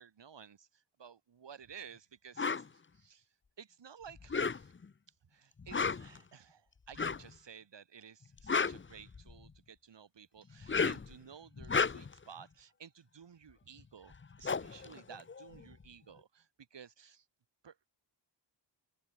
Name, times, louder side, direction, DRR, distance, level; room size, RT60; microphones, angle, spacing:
voice 1, 0.0-3.3 3.6-4.7 5.3-17.3 17.6-17.9, right 7 dB, 70° right, 7.2 m, -54 dB
sound 1, 2.4-2.7 4.2-4.9 5.6-6.2 6.9-7.3 8.2-9.5 10.5-11.1 11.6-12.2 13.8-13.9 14.1-15.8, left 5 dB, 25° left, 0.9 m, -33 dB
wide cardioid pair, 140°, 45 cm